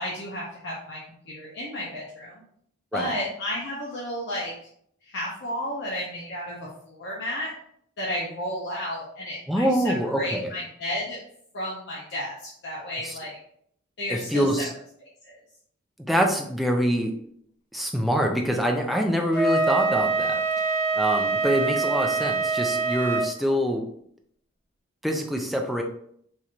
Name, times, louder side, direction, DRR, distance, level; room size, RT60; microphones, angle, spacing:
voice 1, 0.0-2.4 2.9-4.7 5.0-7.5 8.0-11.2 11.5-13.4 14.0-14.5 15.2-15.4, left 1 dB, 55° left, -5 dB, 0.8 m, -32 dB
voice 2, 9.5-10.5 13.0-13.2 14.1-14.7 16.1-17.1 17.7-23.8 25.0-25.8, equal, ahead, 1 dB, 0.4 m, -25 dB
Wind instrument woodwind instrument, 19.3-23.3, right 3 dB, 20° left, 0.9 m, -24 dB
4.4 x 3.0 x 2.5 m, 0.67 s
head